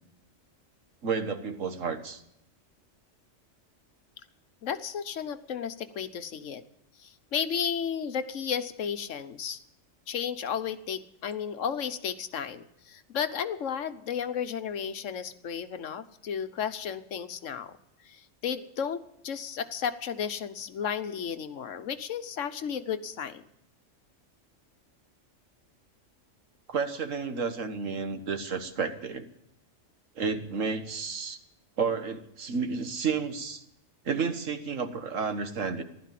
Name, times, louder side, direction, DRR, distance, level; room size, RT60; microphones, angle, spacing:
voice 1, 1.0-2.2 26.7-29.3 30.2-31.4 31.8-33.6 34.1-35.8, right 5 dB, 85° right, 7 dB, 1.8 m, -31 dB
voice 2, 4.6-6.6 7.0-9.6 10.1-17.8 18.0-23.4, left 7 dB, 75° left, 11 dB, 1.3 m, -33 dB
15.5 x 12.0 x 7.5 m, 0.79 s
omnidirectional pair, 1.3 m